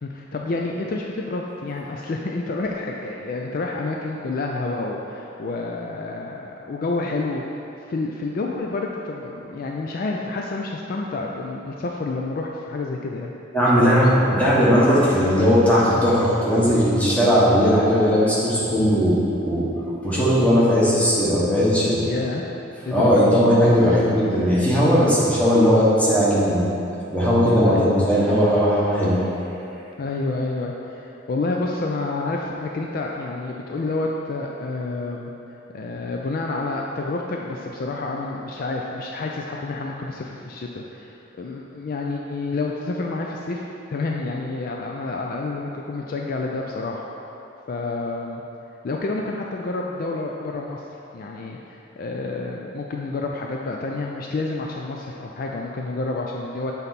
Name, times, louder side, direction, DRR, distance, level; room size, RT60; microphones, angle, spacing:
voice 1, 0.0-7.6 7.9-13.3 13.7-14.2 22.0-22.4 22.9-23.4 27.6-27.8 30.0-35.3 35.7-47.1 47.7-48.4 48.8-50.8 51.1-56.7, left 3 dB, 50° left, 0 dB, 0.4 m, -29 dB
voice 2, 13.5-14.1 14.4-19.2 19.4-19.7 20.0-22.0 22.9-26.7 27.1-29.1, equal, 5° left, -8 dB, 1.3 m, -18 dB
7.1 x 4.0 x 4.2 m, 2.9 s
head